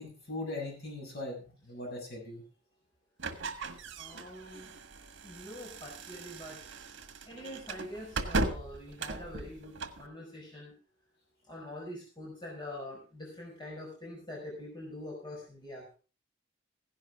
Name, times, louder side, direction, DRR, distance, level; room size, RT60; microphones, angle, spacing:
voice 1, 0.0-2.4, left 2 dB, 55° left, 0 dB, 7.5 m, -40 dB
sound 1, 3.2-10.0, right 3 dB, 65° right, 1.5 m, -38 dB
voice 2, 4.0-4.7 5.2-6.6 7.2-10.7 11.5-15.9, left 1 dB, 25° left, -2 dB, 5.1 m, -44 dB
16.0 x 11.0 x 3.6 m, 0.35 s
head